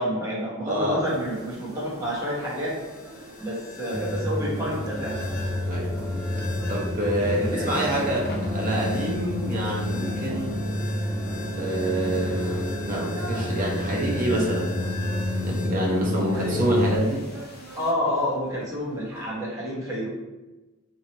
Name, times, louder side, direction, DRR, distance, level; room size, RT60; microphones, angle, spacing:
voice 1, 0.0-2.8 3.1-5.2 7.2-7.9 16.3-16.6 17.8-20.1, equal, 15° right, -7 dB, 1.0 m, -29 dB
voice 2, 0.7-1.0 5.7-5.9 6.7-10.6 11.6-14.8 15.2-17.3, right 1 dB, 35° right, -2 dB, 0.8 m, -27 dB
sound 1, 1.0-19.3, right 2 dB, 80° right, 0.6 m, -45 dB
sound 2, 1.1-17.9, left 2 dB, 45° left, 0.6 m, -42 dB
sound 3, 3.9-17.0, left 1 dB, 5° left, 0.3 m, -29 dB
3.0 x 2.8 x 4.0 m, 1.1 s
head